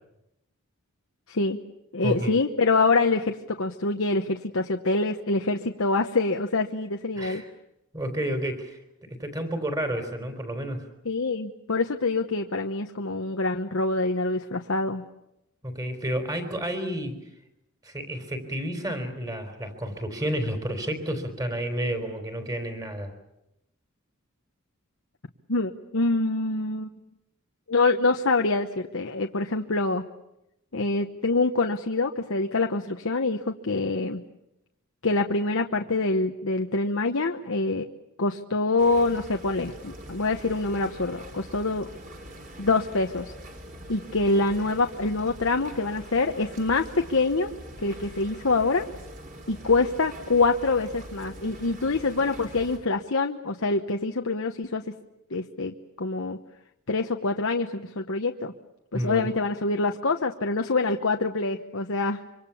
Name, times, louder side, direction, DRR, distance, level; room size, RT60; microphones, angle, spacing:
voice 1, 1.3-1.6 1.9-7.4 11.0-15.0 25.5-27.0 27.7-30.0 30.7-34.2 35.0-37.8 38.2-41.9 42.6-43.3 43.9-47.5 47.8-48.9 49.5-54.8 55.3-56.4 56.9-58.5 58.9-62.2, left 3 dB, 70° left, 4 dB, 1.1 m, -25 dB
voice 2, 2.0-2.3 7.2-7.5 7.9-10.9 15.6-17.2 17.8-23.1 58.9-59.3, right 1 dB, 15° right, 7 dB, 3.8 m, -31 dB
sound 1, 38.8-52.8, equal, 35° right, 3.9 m, -43 dB
26.0 x 25.0 x 7.1 m, 0.88 s
head